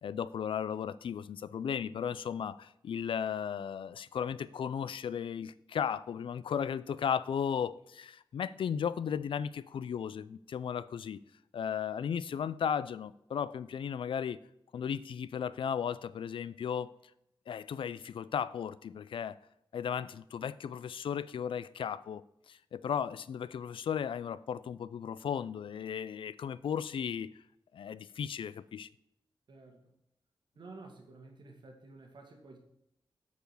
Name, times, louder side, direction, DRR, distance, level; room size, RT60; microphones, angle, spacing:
voice 1, 0.0-11.2 11.5-14.4 14.7-16.9 17.5-19.4 19.7-22.2 22.5-27.3 27.7-28.9, left 8 dB, 70° left, 0.4 m, -35 dB
voice 2, 29.5-29.9 30.6-32.6, right 3 dB, 55° right, 1.9 m, -52 dB
9.0 x 4.8 x 6.8 m
wide cardioid pair, 175°, 9 cm